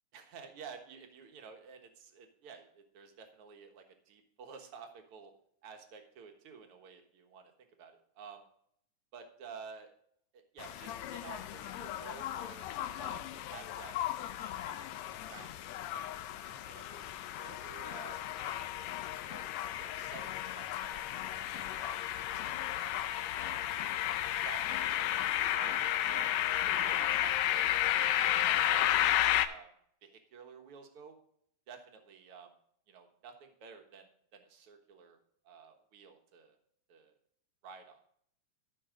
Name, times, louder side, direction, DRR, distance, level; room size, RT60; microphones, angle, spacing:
voice 1, 0.1-5.3 5.6-7.5 7.8-8.4 9.1-9.9 10.3-12.7 13.0-15.5 15.9-16.1 16.5-17.0 17.4-18.7 19.3-19.5 19.8-21.1 21.3-22.0 22.3-22.4 22.7-23.0 23.4-23.7 24.4-24.6 24.9-25.1 25.5-26.3 26.7-27.3 27.6-27.9 28.2-29.7 30.0-31.2 31.7-32.5 32.9-35.2 35.5-36.6 36.9-37.1 37.6-38.0, right 6 dB, 55° right, 4 dB, 1.8 m, -52 dB
sound 1, 10.6-29.5, left 12 dB, 80° left, 1.6 m, -33 dB
14.0 x 5.6 x 3.7 m, 0.69 s
omnidirectional pair, 3.7 m